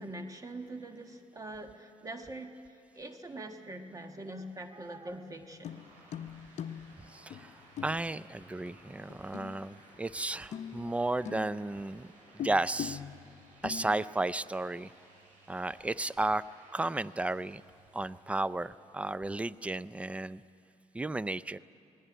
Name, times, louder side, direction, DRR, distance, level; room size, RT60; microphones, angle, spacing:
voice 1, 0.0-5.8, right 1 dB, 25° right, 6 dB, 1.4 m, -43 dB
sound 1, 5.5-10.2 10.5-11.8 12.4-14.5 14.8-14.9, left 9 dB, 60° left, 0.7 m, -43 dB
sound 2, 5.6-19.3, right 2 dB, 85° right, 6.8 m, -59 dB
voice 2, 7.1-7.6 7.8-12.1 12.4-13.0 13.6-14.9 15.5-16.4 16.7-17.6 17.9-20.4 20.9-21.6, right 2 dB, 10° right, 17 dB, 0.4 m, -33 dB
19.5 x 17.0 x 10.0 m, 2.5 s
cardioid pair, 90°, 13 cm